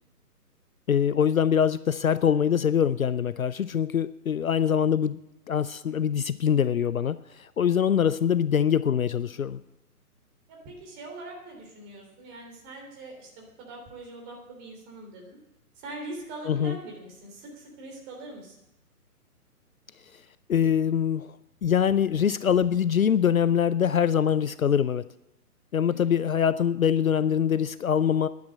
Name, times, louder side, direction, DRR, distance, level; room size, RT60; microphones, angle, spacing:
voice 1, 0.9-5.2 5.5-9.6 16.5-16.8 20.5-21.3 21.6-25.0 25.7-28.3, left 8 dB, 60° left, 16 dB, 0.6 m, -24 dB
voice 2, 10.5-15.4 15.8-18.5 25.9-26.3, right 2 dB, 20° right, 0 dB, 3.4 m, -42 dB
11.0 x 9.6 x 8.4 m, 0.89 s
figure-of-eight pair, 135°, 46 cm